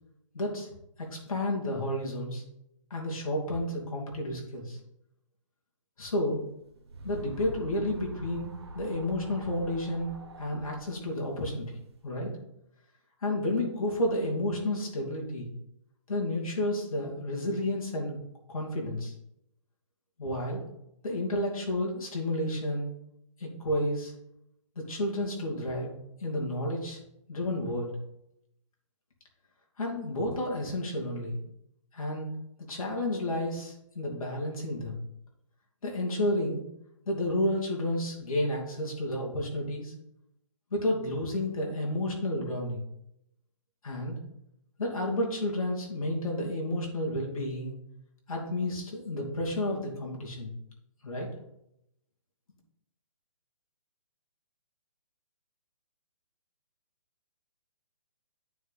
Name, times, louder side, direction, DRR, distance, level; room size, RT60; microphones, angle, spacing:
voice 1, 0.3-0.7 1.0-2.4 2.9-4.8 6.0-6.4 7.0-12.3 13.2-15.5 16.1-18.2 18.5-19.1 20.2-20.6 21.0-22.9 23.4-24.1 24.8-25.9 26.2-27.0 27.3-27.9 29.8-31.4 31.9-32.3 32.7-35.0 35.8-36.7 37.1-39.9 40.7-42.8 43.8-44.2 44.8-47.7 48.3-50.5 51.0-51.3, left 1 dB, 80° left, -2 dB, 2.7 m, -31 dB
sound 1, 6.4-12.0, right 1 dB, 50° right, 1.1 m, -46 dB
9.4 x 4.7 x 4.2 m, 0.81 s
hypercardioid pair, 180°, 18 cm